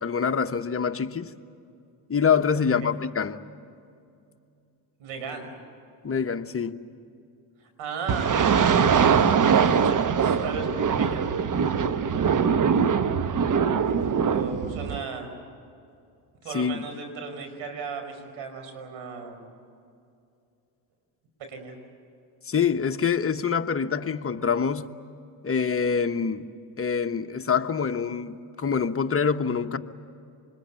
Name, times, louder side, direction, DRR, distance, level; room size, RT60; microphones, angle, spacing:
voice 1, 0.0-1.3 2.1-3.4 6.0-6.8 16.5-16.8 22.4-24.9 25.4-26.4 26.8-29.8, left 6 dB, 30° left, 7 dB, 1.2 m, -25 dB
voice 2, 5.0-5.5 7.6-8.8 9.8-11.2 14.2-15.3 16.4-19.4 21.5-21.8, right 5 dB, 75° right, 5 dB, 5.4 m, -36 dB
sound 1, 8.1-15.0, right 6 dB, 40° right, 1.2 m, -22 dB
26.5 x 21.5 x 9.1 m, 2.5 s
supercardioid pair, 75°, 47 cm